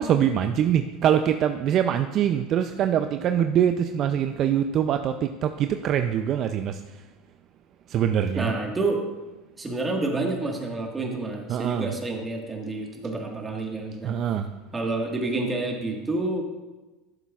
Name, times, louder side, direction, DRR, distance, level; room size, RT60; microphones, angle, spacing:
voice 1, 0.0-6.8 7.9-8.5 11.5-11.9 14.0-14.5, right 9 dB, 45° right, 8 dB, 0.4 m, -23 dB
voice 2, 8.3-9.0 9.6-14.1 14.7-16.4, right 2 dB, 15° right, 1 dB, 1.5 m, -28 dB
13.0 x 7.2 x 2.4 m, 1.2 s
supercardioid pair, 115°, 0 cm